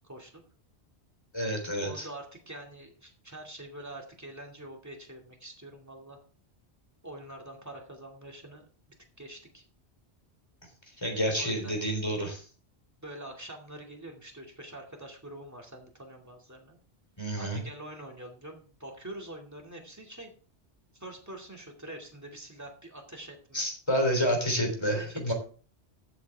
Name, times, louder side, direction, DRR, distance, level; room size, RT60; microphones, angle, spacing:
voice 1, 0.0-0.4 1.8-6.2 7.0-8.7 9.2-9.6 11.4-11.7 13.0-16.8 17.4-20.3 20.9-23.6 24.8-25.3, right 1 dB, 15° right, 1 dB, 2.4 m, -45 dB
voice 2, 1.3-2.1 11.0-12.5 17.2-17.6 23.5-25.3, equal, 25° left, 2 dB, 3.6 m, -29 dB
14.0 x 8.1 x 3.5 m, 0.39 s
omnidirectional pair, 1.1 m